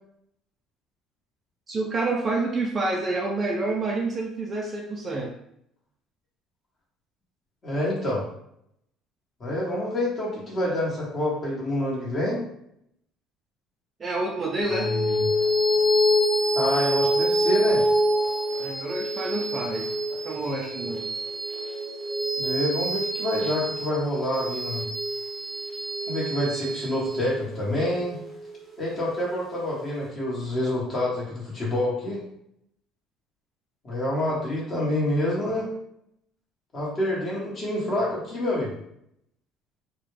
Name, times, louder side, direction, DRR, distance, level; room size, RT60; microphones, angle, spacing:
voice 1, 1.7-5.3 14.0-14.9 18.6-21.1, right 2 dB, 25° right, 0 dB, 0.4 m, -28 dB
voice 2, 7.6-8.2 9.4-12.4 14.8-15.2 16.5-17.8 22.4-24.8 26.1-28.2 28.8-32.2 33.8-35.7 36.7-38.7, left 1 dB, 30° left, -5 dB, 1.3 m, -27 dB
sound 1, 14.6-29.4, equal, 5° left, 1.0 m, -26 dB
3.9 x 2.2 x 3.3 m, 0.74 s
cardioid pair, 160°, 0 cm